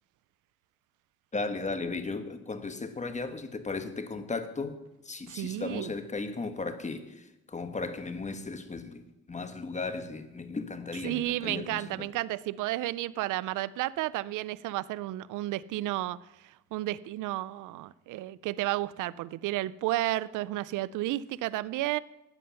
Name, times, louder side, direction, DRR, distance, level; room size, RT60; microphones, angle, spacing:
voice 1, 1.3-4.8 5.0-12.1, left 3 dB, 25° left, 1.2 m, -36 dB
voice 2, 5.3-5.9 11.0-16.2 16.4-22.0, right 16 dB, 85° right, 0.5 m, -32 dB
13.0 x 9.4 x 5.7 m
cardioid pair, 90°, 30 cm